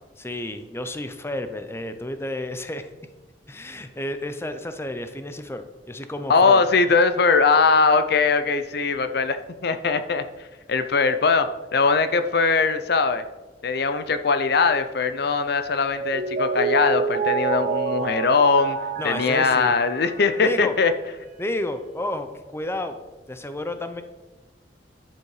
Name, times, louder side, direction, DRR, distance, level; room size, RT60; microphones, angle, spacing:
voice 1, 0.2-2.9 3.5-6.6 19.0-19.7 20.4-20.7 21.4-23.0 23.3-24.0, left 1 dB, 15° left, 9 dB, 0.7 m, -31 dB
voice 2, 6.3-10.2 10.7-13.2 13.6-18.8 19.0-20.9, left 4 dB, 65° left, 10 dB, 0.6 m, -20 dB
Mallet percussion, 15.9-20.8, right 5 dB, 50° right, 1.5 m, -28 dB
11.0 x 7.5 x 4.9 m, 1.1 s
head